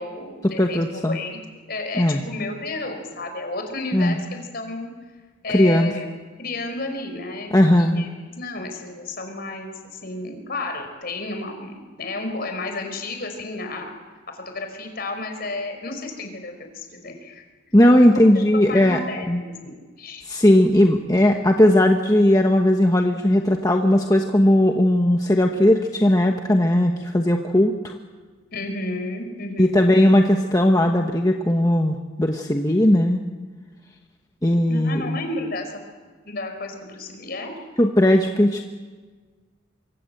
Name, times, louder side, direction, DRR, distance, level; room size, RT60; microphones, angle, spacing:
voice 1, 0.0-1.4 1.7-4.9 5.4-6.1 6.4-13.9 14.3-17.4 18.1-18.3 18.7-20.2 28.5-29.9 34.7-35.7 36.2-37.5, left 2 dB, 50° left, 5 dB, 5.1 m, -32 dB
voice 2, 0.6-1.2 2.0-2.2 3.9-4.2 5.5-5.9 7.5-8.1 17.7-19.0 19.3-19.4 20.3-27.9 29.6-33.2 34.4-35.2 37.8-38.6, left 1 dB, 20° left, 3 dB, 1.2 m, -17 dB
25.5 x 24.5 x 7.9 m, 1.4 s
head